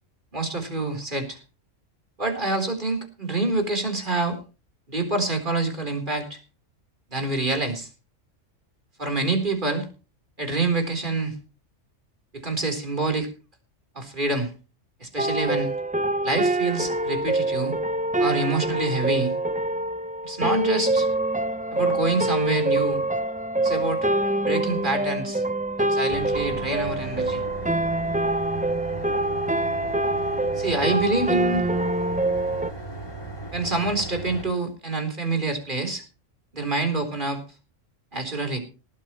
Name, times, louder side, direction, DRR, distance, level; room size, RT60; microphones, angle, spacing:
voice 1, 0.3-1.4 2.2-4.4 4.9-6.4 7.1-7.9 9.0-9.9 10.4-11.4 12.3-13.3 13.9-14.5 15.0-15.7 16.2-17.8 18.2-19.3 20.2-21.1 21.7-23.0 23.6-24.0 24.4-25.4 25.8-27.4 30.6-31.6 33.5-36.0 36.5-37.4 38.1-38.6, right 2 dB, 40° right, 5 dB, 4.4 m, -26 dB
sound 1, 15.2-32.7, right 2 dB, 10° right, 0.4 m, -25 dB
sound 2, 26.1-34.4, right 2 dB, 20° left, 2.5 m, -37 dB
19.0 x 13.0 x 3.2 m, 0.34 s
omnidirectional pair, 1.3 m